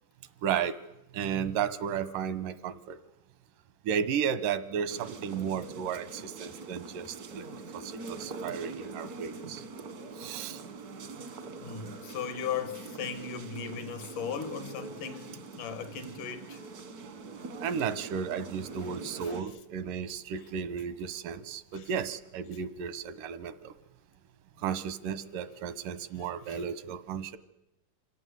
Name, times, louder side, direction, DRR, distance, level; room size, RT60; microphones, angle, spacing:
voice 1, 0.4-0.8 1.1-3.0 3.8-7.5 7.7-9.6 10.2-10.6 17.6-23.7 24.6-27.4, right 7 dB, 85° right, 2.6 m, -34 dB
sound 1, 4.9-19.4, right 4 dB, 65° right, 0.9 m, -44 dB
voice 2, 11.3-16.6 18.8-19.4 21.7-21.9 24.6-24.7 26.2-26.6, left 7 dB, 75° left, 2.9 m, -38 dB
25.5 x 17.0 x 8.0 m
omnidirectional pair, 3.7 m